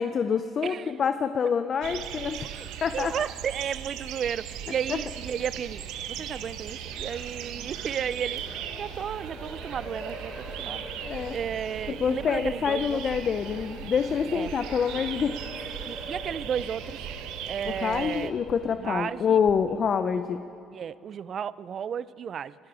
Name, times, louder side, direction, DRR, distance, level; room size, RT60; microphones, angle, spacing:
voice 1, 0.0-2.5 2.8-3.1 4.9-5.0 11.0-11.4 11.9-15.4 17.6-20.4, left 6 dB, 45° left, 10 dB, 0.6 m, -26 dB
voice 2, 0.6-0.9 2.4-2.7 2.9-5.8 6.1-8.4 8.8-10.8 11.3-13.0 14.3-14.5 15.9-17.0 17.5-18.3 18.7-19.4 20.7-22.6, right 8 dB, 50° right, 18 dB, 0.4 m, -33 dB
sound 1, 1.8-18.3, right 10 dB, 85° right, 0.9 m, -38 dB
sound 2, 4.5-19.6, left 5 dB, 80° left, 1.5 m, -51 dB
Race car auto racing, 4.7-18.7, equal, 10° left, 4.4 m, -45 dB
23.5 x 12.5 x 4.9 m, 2.5 s
cardioid pair, 90°, 0 cm